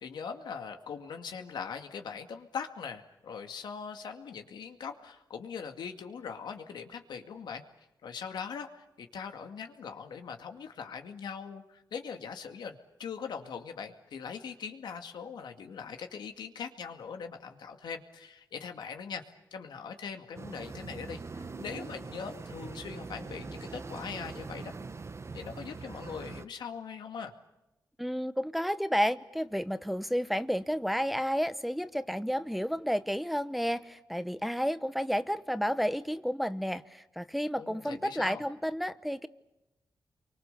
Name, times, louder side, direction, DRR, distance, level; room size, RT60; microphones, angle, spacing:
voice 1, 0.0-7.6 8.0-19.2 19.5-24.7 25.3-27.3 37.5-38.4, left 6 dB, 90° left, 5 dB, 2.2 m, -41 dB
sound 1, 20.4-26.5, right 4 dB, 40° right, 0.9 m, -42 dB
voice 2, 28.0-39.3, equal, ahead, 12 dB, 1.0 m, -31 dB
29.5 x 24.0 x 6.9 m, 0.95 s
cardioid pair, 75°, 7 cm